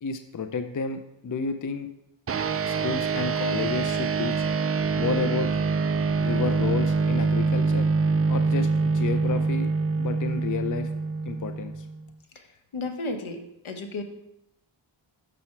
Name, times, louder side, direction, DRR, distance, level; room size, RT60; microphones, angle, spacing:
voice 1, 0.0-1.9 2.6-4.5 5.0-5.5 6.2-7.9 8.3-8.7 8.9-9.7 10.0-10.9 11.2-11.9, left 5 dB, 40° left, 8 dB, 0.6 m, -31 dB
sound 1, 2.3-12.0, right 4 dB, 30° right, 0.4 m, -25 dB
voice 2, 12.3-14.0, left 2 dB, 70° left, 5 dB, 1.2 m, -34 dB
6.9 x 5.9 x 4.4 m, 0.82 s
cardioid pair, 60°, 50 cm